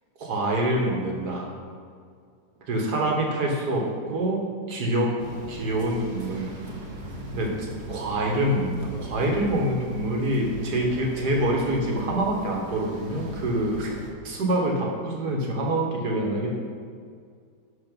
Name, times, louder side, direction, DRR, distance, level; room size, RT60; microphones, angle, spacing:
voice 1, 0.2-1.5 2.7-4.4 4.7-5.1 5.5-6.5 7.3-7.5 7.9-13.9 14.2-16.5, right 1 dB, 65° right, -1 dB, 1.9 m, -26 dB
sound 1, 5.2-14.1, right 1 dB, 45° right, 1.4 m, -39 dB
11.0 x 4.4 x 5.3 m, 2.1 s
omnidirectional pair, 1.9 m